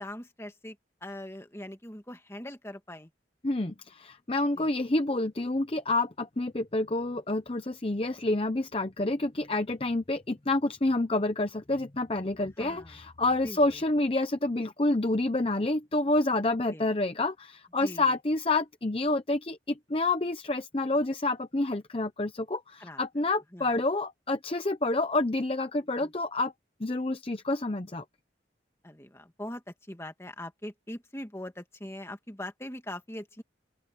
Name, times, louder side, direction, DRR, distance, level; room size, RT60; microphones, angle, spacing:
voice 1, 0.0-3.1 4.5-4.7 12.6-13.1 13.4-13.8 16.7-16.9 17.8-18.2 22.8-23.0 23.5-23.8 26.0-26.1 28.8-33.4, left 1 dB, 15° left, 1.9 m, -42 dB
voice 2, 3.4-26.5 26.8-28.0, left 2 dB, 30° left, 0.8 m, -28 dB
open air
head